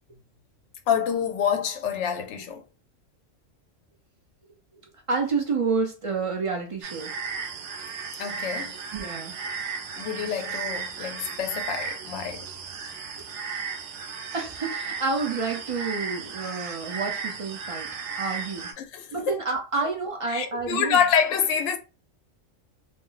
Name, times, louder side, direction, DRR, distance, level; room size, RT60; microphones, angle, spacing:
voice 1, 0.9-2.6 8.2-8.8 10.0-12.5 18.8-19.3 20.3-21.8, left 7 dB, 70° left, 0.8 m, -27 dB
voice 2, 5.1-7.1 8.9-9.3 14.3-17.9 18.2-18.7 19.1-21.0, right 4 dB, 55° right, 0.3 m, -29 dB
sound 1, 6.8-18.7, right 5 dB, 70° right, 0.9 m, -35 dB
2.5 x 2.0 x 3.8 m
omnidirectional pair, 1.3 m